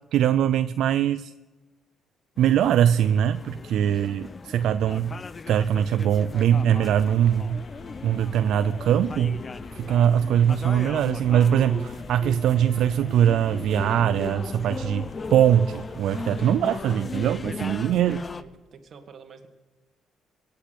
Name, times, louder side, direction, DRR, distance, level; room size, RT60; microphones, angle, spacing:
voice 1, 0.1-1.3 2.4-5.2 5.5-7.6 8.0-9.4 9.7-18.2, right 10 dB, 80° right, 13 dB, 0.4 m, -22 dB
sound 1, 2.4-18.4, left 4 dB, 35° left, 0.6 m, -37 dB
voice 2, 3.5-3.9 17.9-18.0 18.4-19.5, right 6 dB, 55° right, 7 dB, 1.9 m, -48 dB
sound 2, 6.4-18.4, left 2 dB, 70° left, 4.6 m, -47 dB
18.0 x 8.4 x 8.3 m, 1.2 s
cardioid pair, 90°, 0 cm